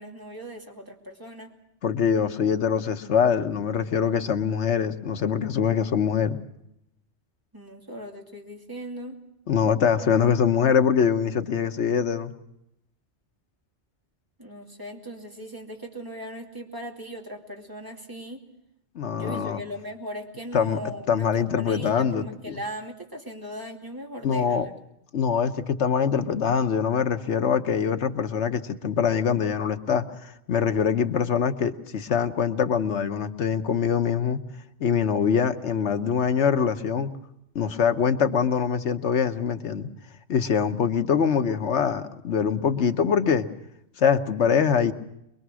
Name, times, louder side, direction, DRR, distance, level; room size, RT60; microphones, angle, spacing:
voice 1, 0.0-1.5 7.5-9.2 14.4-18.5 19.1-24.7, equal, 20° right, 1 dB, 2.6 m, -38 dB
voice 2, 1.8-6.4 9.5-12.3 18.9-19.6 20.5-20.8 21.1-22.6 24.2-24.7 25.1-34.4 34.8-37.1 37.5-39.9 40.3-43.5 44.0-44.9, left 7 dB, 80° left, 9 dB, 1.3 m, -23 dB
24.0 x 23.0 x 6.2 m, 0.81 s
omnidirectional pair, 1.1 m